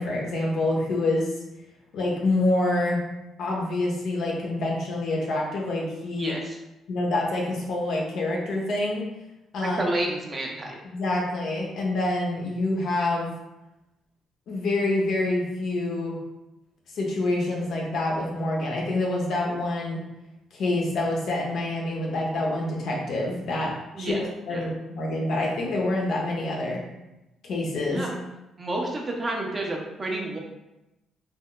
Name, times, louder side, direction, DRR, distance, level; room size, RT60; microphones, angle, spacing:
voice 1, 0.0-1.3 1.9-3.0 3.4-6.3 6.9-9.1 9.5-9.8 10.8-13.3 14.5-16.2 16.9-20.0 20.5-26.8 27.4-28.1, left 2 dB, 70° left, -2 dB, 0.8 m, -27 dB
voice 2, 6.1-6.6 9.6-10.7 23.9-24.2 24.5-24.6 27.9-28.2 28.6-30.4, right 1 dB, 35° right, -1 dB, 0.8 m, -30 dB
3.5 x 2.6 x 2.3 m, 0.96 s
supercardioid pair, 55°, 0 cm